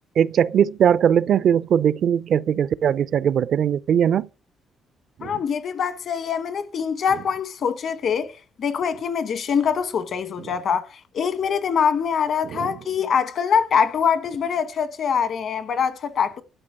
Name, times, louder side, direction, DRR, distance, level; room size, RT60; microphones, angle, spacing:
voice 1, 0.2-4.3 5.2-5.3 12.5-12.7, right 8 dB, 65° right, 0.5 m, -20 dB
voice 2, 5.2-16.4, left 7 dB, 60° left, 1.3 m, -24 dB
12.5 x 5.2 x 7.8 m
cardioid pair, 90°, 0 cm